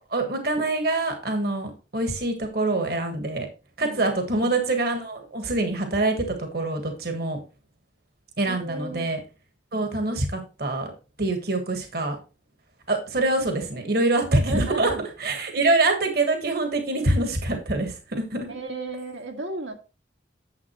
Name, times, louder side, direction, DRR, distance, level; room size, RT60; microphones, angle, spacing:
voice 1, 0.0-3.5 3.8-7.4 8.4-9.2 9.7-10.9 11.2-12.2 12.9-14.9 15.2-18.5, right 2 dB, 55° right, 5 dB, 1.5 m, -25 dB
voice 2, 3.8-4.5 8.4-9.1 14.3-15.0 18.5-19.7, right 2 dB, 80° right, 2 dB, 1.7 m, -34 dB
9.6 x 7.3 x 3.0 m, 0.31 s
head